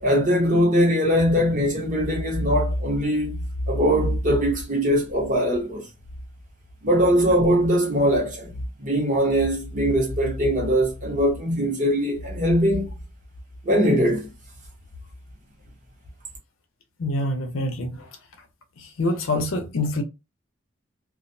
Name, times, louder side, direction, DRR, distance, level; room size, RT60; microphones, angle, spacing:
voice 1, 0.0-5.8 6.8-8.5 8.8-12.9 13.6-14.3, equal, 40° right, 0.9 m, -21 dB
voice 2, 17.0-18.2 18.8-20.0, left 1 dB, 85° left, 0.6 m, -26 dB
2.4 x 2.1 x 2.6 m
head